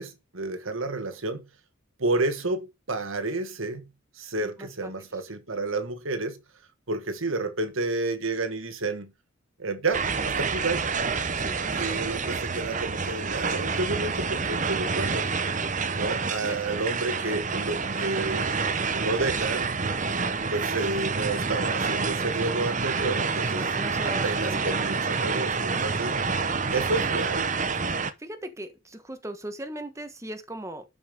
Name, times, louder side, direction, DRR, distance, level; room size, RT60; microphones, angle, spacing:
voice 1, 0.0-1.4 2.0-3.8 4.1-6.4 6.9-9.1 9.6-10.9 11.7-15.3 15.9-18.5 18.9-19.7 20.5-23.7 24.0-26.2 26.7-27.5, right 2 dB, 75° right, 1.7 m, -30 dB
voice 2, 4.4-4.9 11.3-12.0 16.2-16.6 23.5-25.3 27.8-30.8, right 1 dB, 15° right, 1.3 m, -39 dB
sound 1, 9.9-28.1, right 4 dB, 35° right, 0.9 m, -28 dB
12.0 x 5.6 x 5.3 m
head